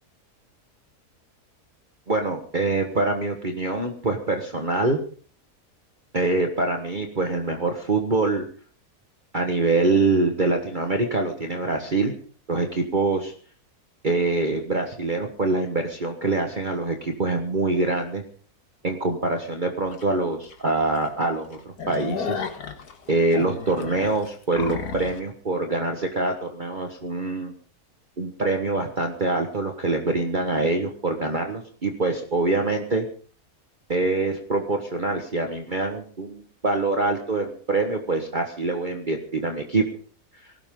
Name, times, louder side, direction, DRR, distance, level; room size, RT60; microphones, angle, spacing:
voice 1, 2.1-5.0 6.1-8.5 9.3-12.1 12.5-13.3 14.0-18.2 18.8-22.4 23.1-27.5 28.2-33.1 33.9-39.8 40.4-40.5, right 3 dB, 35° right, 4 dB, 1.5 m, -25 dB
sound 1, 19.9-20.0 20.5-20.6 20.9-21.1 21.4-25.2, left 6 dB, 85° left, 2.2 m, -33 dB
19.5 x 17.0 x 3.8 m, 0.44 s
omnidirectional pair, 1.6 m